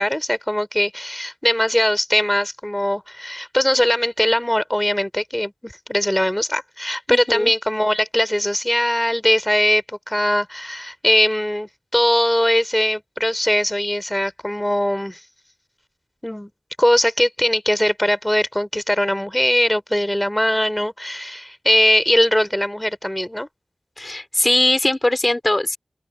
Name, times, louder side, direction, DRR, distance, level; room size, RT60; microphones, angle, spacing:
voice 1, 0.0-15.2 16.2-16.5 16.8-23.5, equal, 10° left, 3.8 m, -20 dB
voice 2, 7.1-7.5 24.0-25.8, left 1 dB, 25° left, 3.7 m, -20 dB
open air
wide cardioid pair, 55°, 0 cm